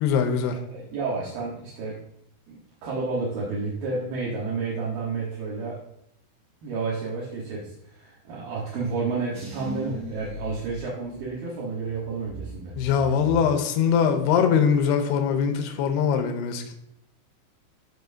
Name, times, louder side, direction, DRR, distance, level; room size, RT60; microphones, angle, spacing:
voice 1, 0.0-0.6 12.8-16.7, left 7 dB, 90° left, 5 dB, 2.4 m, -22 dB
voice 2, 0.7-2.0 2.5-5.8 6.6-12.7, right 4 dB, 65° right, -6 dB, 2.5 m, -31 dB
sound 1, 9.3-11.4 11.8-14.4 14.7-15.3, equal, 15° right, 1.6 m, -40 dB
12.0 x 4.4 x 2.6 m, 0.77 s
omnidirectional pair, 5.5 m